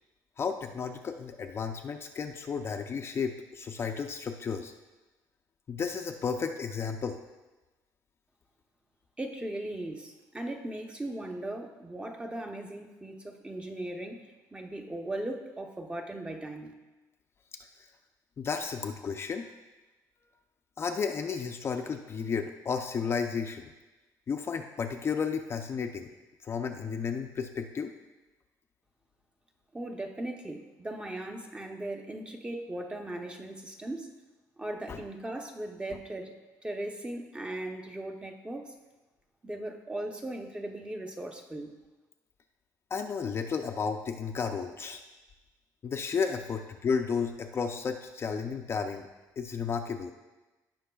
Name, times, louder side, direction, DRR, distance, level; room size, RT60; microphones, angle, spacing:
voice 1, 0.4-4.7 5.7-7.2 17.8-17.9 18.4-19.5 20.8-23.7 24.3-26.1 26.4-27.9 34.9-35.0 42.9-45.0 45.8-49.1 49.4-50.1, left 6 dB, 35° left, 4 dB, 0.5 m, -33 dB
voice 2, 9.2-16.7 29.7-34.1 34.6-36.3 36.6-38.7 39.4-41.7, right 1 dB, 15° right, 3 dB, 0.7 m, -38 dB
16.5 x 5.8 x 2.3 m, 1.1 s
cardioid pair, 135°, 7 cm